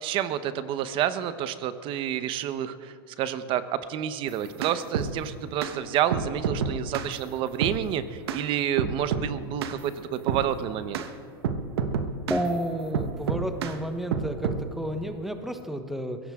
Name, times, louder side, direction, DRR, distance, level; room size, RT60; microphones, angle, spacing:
voice 1, 0.0-11.0, right 10 dB, 40° right, 12 dB, 1.0 m, -29 dB
sound 1, 4.3-5.1 5.6-5.8 6.1-7.1 7.6-7.8 8.3-8.4 8.8-9.3 9.6-9.8 10.3-10.5 10.9-11.1 11.4-12.5 12.9-13.8 14.1-14.6, right 6 dB, 80° right, 1.3 m, -28 dB
voice 2, 12.3-16.2, right 1 dB, ahead, 7 dB, 1.2 m, -31 dB
22.5 x 16.5 x 3.7 m, 2.2 s
supercardioid pair, 130°, 13 cm